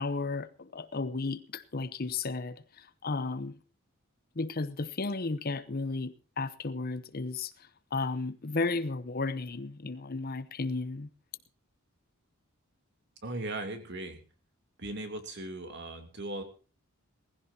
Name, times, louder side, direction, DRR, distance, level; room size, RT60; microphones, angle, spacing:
voice 1, 0.0-3.6 4.4-7.5 7.9-11.1, left 3 dB, 45° left, 0.8 m, -34 dB
voice 2, 13.2-14.2 14.8-16.4, right 2 dB, 55° right, 3.0 m, -38 dB
19.5 x 15.5 x 2.8 m
head